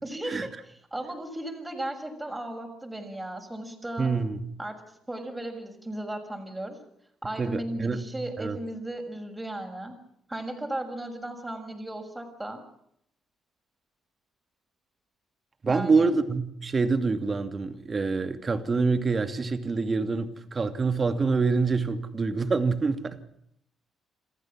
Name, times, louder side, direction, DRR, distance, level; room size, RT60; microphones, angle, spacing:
voice 1, 0.0-0.5 0.9-4.1 4.6-4.8 5.1-6.8 7.2-9.9 10.3-12.6 15.7-16.1, right 1 dB, 10° right, 4 dB, 6.5 m, -35 dB
voice 2, 4.0-4.4 7.4-8.1 8.4-8.6 15.6-23.2, right 4 dB, 35° right, 9 dB, 2.7 m, -26 dB
28.0 x 15.0 x 7.5 m, 0.73 s
cardioid pair, 90°, 0 cm